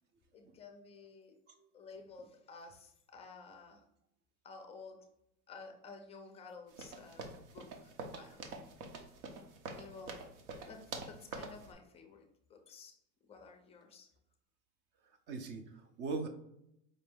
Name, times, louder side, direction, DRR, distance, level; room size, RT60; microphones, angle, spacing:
voice 1, 0.3-1.3 1.7-3.8 4.4-5.1 5.5-8.7 9.7-10.1 10.7-12.9 13.2-14.1, left 4 dB, 15° left, 4 dB, 0.5 m, -53 dB
sound 1, 6.7-11.7, right 3 dB, 65° right, 0.9 m, -46 dB
voice 2, 15.3-16.3, right 4 dB, 30° right, 7 dB, 0.6 m, -41 dB
5.1 x 2.6 x 3.5 m, 0.78 s
supercardioid pair, 145°, 38 cm